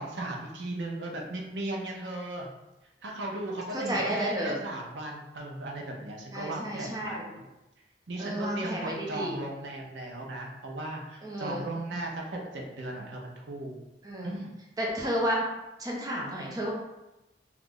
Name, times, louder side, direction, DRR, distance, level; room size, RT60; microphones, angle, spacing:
voice 1, 0.0-2.5 3.0-7.4 8.1-13.8 14.2-14.5, right 2 dB, 85° right, 0 dB, 0.6 m, -37 dB
voice 2, 3.7-4.6 6.3-7.2 8.2-9.5 11.2-11.6 14.0-14.4 14.8-15.5 15.8-16.7, equal, 20° right, -3 dB, 0.6 m, -31 dB
2.9 x 2.4 x 3.6 m, 0.96 s
head